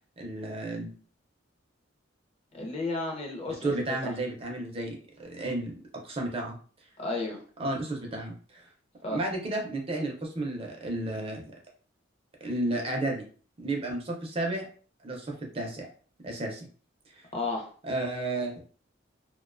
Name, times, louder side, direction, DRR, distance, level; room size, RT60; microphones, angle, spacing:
voice 1, 0.2-0.9 3.6-6.6 7.6-8.7 9.1-11.5 12.4-13.2 13.6-14.7 15.0-15.9 16.2-16.7 17.2-17.3 17.8-18.6, right 2 dB, 30° right, 0 dB, 0.5 m, -32 dB
voice 2, 2.5-3.7 4.0-4.1 7.0-7.4 9.0-9.2 17.3-17.7, left 2 dB, 30° left, 1 dB, 0.6 m, -32 dB
2.5 x 2.1 x 2.4 m, 0.41 s
head